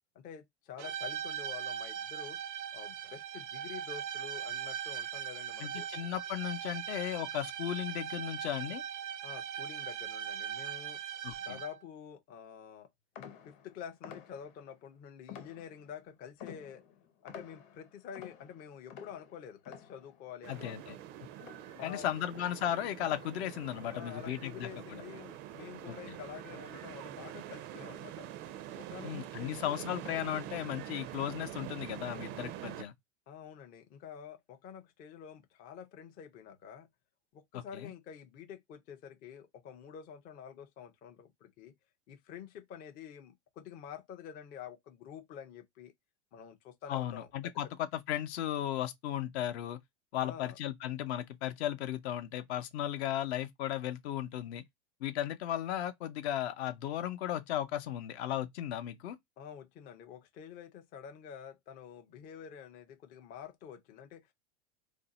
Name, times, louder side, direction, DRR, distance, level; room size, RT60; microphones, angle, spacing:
voice 1, 0.1-2.4 2.7-5.9 9.2-11.0 11.4-12.9 13.4-16.8 17.2-21.0 21.7-22.1 23.9-28.3 28.8-29.9 33.3-36.9 37.3-41.8 42.1-45.9 46.3-47.5 50.2-50.6 59.4-64.3, left 8 dB, 25° left, 0.4 m, -48 dB
sound 1, 0.8-11.9, right 9 dB, 85° right, 0.6 m, -40 dB
voice 2, 5.6-8.8 11.2-11.6 20.5-20.8 21.8-25.0 25.9-26.2 29.0-32.9 37.5-37.9 46.9-47.7 47.9-49.8 50.1-54.6 55.0-59.2, left 11 dB, 65° left, 0.7 m, -36 dB
sound 2, 13.1-14.7 15.3-16.0 16.4-22.0 22.3-24.3 24.6-25.0 25.5-26.0, left 8 dB, 45° left, 1.0 m, -52 dB
sound 3, 20.4-32.8, right 12 dB, 40° right, 0.4 m, -45 dB
2.6 x 2.0 x 3.8 m
supercardioid pair, 125°, 35 cm